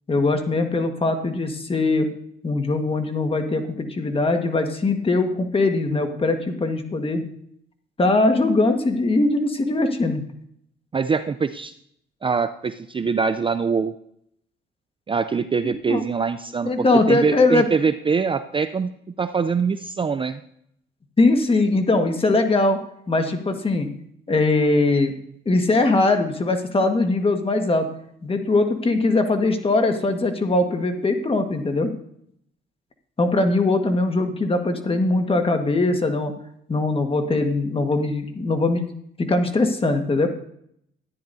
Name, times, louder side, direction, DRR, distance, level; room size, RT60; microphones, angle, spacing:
voice 1, 0.1-2.1 2.4-7.2 8.0-10.2 15.6-16.0 16.6-17.7 21.2-22.8 23.1-23.9 24.3-25.1 25.4-27.9 28.2-31.9 33.2-36.3 36.7-38.9 39.2-40.3, left 2 dB, 30° left, 5 dB, 1.5 m, -21 dB
voice 2, 10.9-11.7 12.2-13.9 15.1-18.9 19.2-20.4, right 5 dB, 25° right, 11 dB, 0.4 m, -23 dB
13.5 x 10.0 x 2.7 m, 0.70 s
cardioid pair, 90°, 20 cm